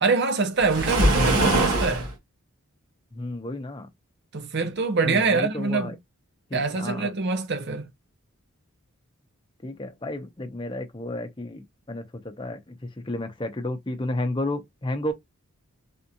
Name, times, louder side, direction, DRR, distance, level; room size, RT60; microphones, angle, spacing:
voice 1, 0.0-2.1 4.3-5.9 6.5-7.9, right 4 dB, 50° right, 0.7 m, -25 dB
Waves surf, 0.6-2.1, right 1 dB, 90° right, 1.3 m, -22 dB
voice 2, 3.1-3.9 5.0-6.0 6.5-7.1 9.6-15.1, left 1 dB, 20° left, 0.6 m, -32 dB
3.5 x 2.4 x 2.8 m
head